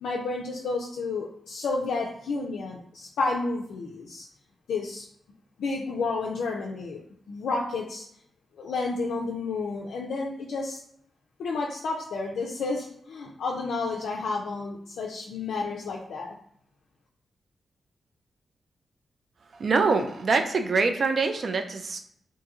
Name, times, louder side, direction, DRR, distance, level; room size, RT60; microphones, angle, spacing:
voice 1, 0.0-4.2 4.7-5.0 5.6-7.0 7.3-8.0 8.6-10.8 11.4-16.3, left 3 dB, 90° left, -2 dB, 0.3 m, -31 dB
voice 2, 19.5-22.0, right 4 dB, 60° right, 6 dB, 0.3 m, -24 dB
2.8 x 2.5 x 2.4 m, 0.66 s
cardioid pair, 65°, 0 cm